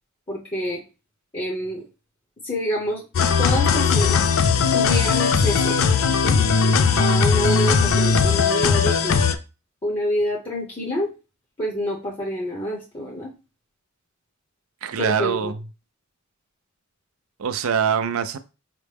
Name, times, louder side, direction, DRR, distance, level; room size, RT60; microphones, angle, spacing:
voice 1, 0.3-0.8 1.3-1.9 2.4-3.0 3.4-4.2 4.7-5.8 6.2-6.4 7.0-9.3 9.8-11.1 11.6-13.3 15.0-15.5, left 1 dB, 25° left, 0.9 m, -27 dB
sound 1, 3.1-9.3, left 5 dB, 70° left, 0.4 m, -19 dB
voice 2, 14.8-15.6 17.4-18.4, right 7 dB, 90° right, 0.4 m, -23 dB
5.8 x 2.1 x 3.4 m
head